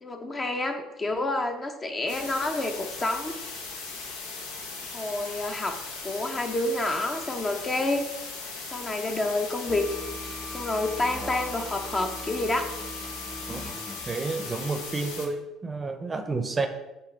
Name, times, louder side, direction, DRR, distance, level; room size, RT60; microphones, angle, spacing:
voice 1, 0.0-3.3 4.9-5.8 6.0-8.1 8.7-9.9 10.5-12.7, left 2 dB, 30° left, 5 dB, 0.8 m, -28 dB
sound 1, 2.1-15.3, left 4 dB, 75° left, 0.8 m, -38 dB
Bowed string instrument, 9.7-15.1, left 4 dB, 50° left, 1.3 m, -46 dB
Musical instrument, 9.7-14.2, right 1 dB, 10° left, 0.4 m, -42 dB
voice 2, 14.1-16.7, right 3 dB, 25° right, 7 dB, 0.6 m, -30 dB
8.3 x 2.9 x 3.9 m, 1.0 s
hypercardioid pair, 60°, 0 cm